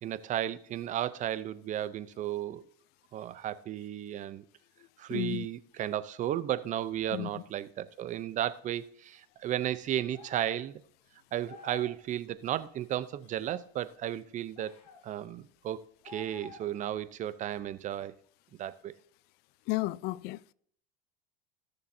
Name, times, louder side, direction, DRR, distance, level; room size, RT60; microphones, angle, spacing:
voice 1, 0.0-2.6 3.1-4.4 5.0-10.8 11.3-14.7 15.0-18.1 18.6-18.9, right 11 dB, 40° right, 0.7 m, -34 dB
voice 2, 5.1-5.5 7.1-7.3 19.7-20.4, left 20 dB, 55° left, 0.4 m, -32 dB
sound 1, 10.1-10.7 11.5-12.0 14.6-15.0 16.0-16.8, left 4 dB, 90° left, 1.7 m, -49 dB
16.5 x 6.9 x 2.8 m
supercardioid pair, 105°, 20 cm